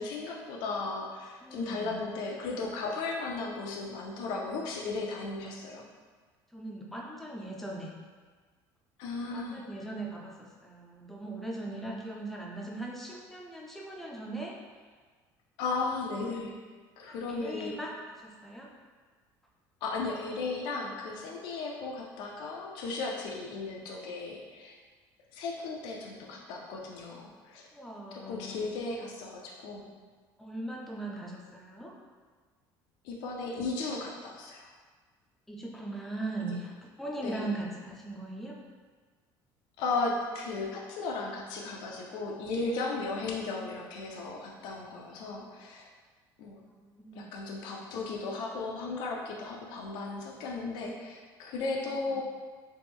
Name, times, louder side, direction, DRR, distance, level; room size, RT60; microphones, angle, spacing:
voice 1, 0.0-5.9 9.0-9.6 15.6-16.6 17.0-17.8 19.8-24.7 25.3-27.7 28.1-29.9 33.0-34.7 37.2-37.5 39.8-45.8 46.4-46.6 47.2-52.2, left 3 dB, 65° left, -1 dB, 0.4 m, -35 dB
voice 2, 1.4-1.9 6.5-7.9 9.3-14.6 17.1-17.9 18.2-18.7 27.7-28.6 30.4-31.9 35.5-38.6 46.8-47.3 52.1-52.2, right 2 dB, 5° left, -2 dB, 0.4 m, -39 dB
3.1 x 2.9 x 3.5 m, 1.5 s
cardioid pair, 180°, 8 cm